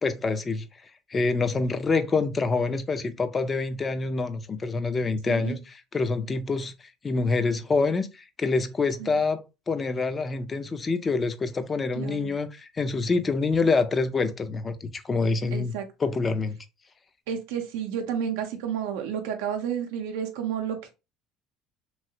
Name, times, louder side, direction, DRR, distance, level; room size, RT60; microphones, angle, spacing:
voice 1, 0.0-0.7 1.1-15.7 16.0-16.6, left 3 dB, 30° left, 0.5 m, -26 dB
voice 2, 5.3-5.6 9.0-9.2 12.0-12.3 15.5-15.9 17.3-20.9, right 8 dB, 85° right, 0.5 m, -31 dB
3.1 x 2.8 x 2.6 m
supercardioid pair, 90°, 0 cm